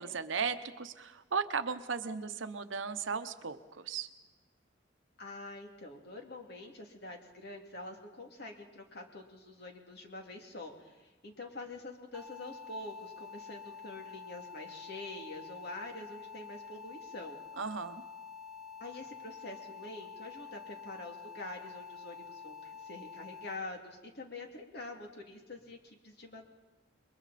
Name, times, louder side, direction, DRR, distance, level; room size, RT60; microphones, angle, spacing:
voice 1, 0.0-4.1 17.6-18.0, right 5 dB, 85° right, 10 dB, 1.0 m, -36 dB
voice 2, 5.2-17.4 18.8-26.4, left 2 dB, 60° left, 2 dB, 2.6 m, -46 dB
sound 1, 12.1-23.6, left 6 dB, ahead, 0.9 m, -48 dB
28.5 x 22.0 x 4.2 m, 1.1 s
head